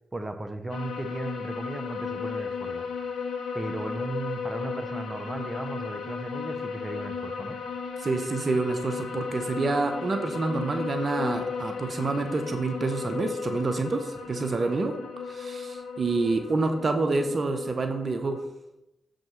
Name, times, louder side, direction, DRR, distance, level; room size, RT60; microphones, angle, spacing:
voice 1, 0.1-2.9 3.5-7.6, right 2 dB, 20° right, 7 dB, 1.1 m, -36 dB
sound 1, 0.7-18.4, left 5 dB, 85° left, 1.3 m, -35 dB
voice 2, 8.0-14.9 15.2-18.4, right 3 dB, 55° right, 6 dB, 0.8 m, -27 dB
7.5 x 5.2 x 5.7 m, 0.86 s
supercardioid pair, 45°, 0 cm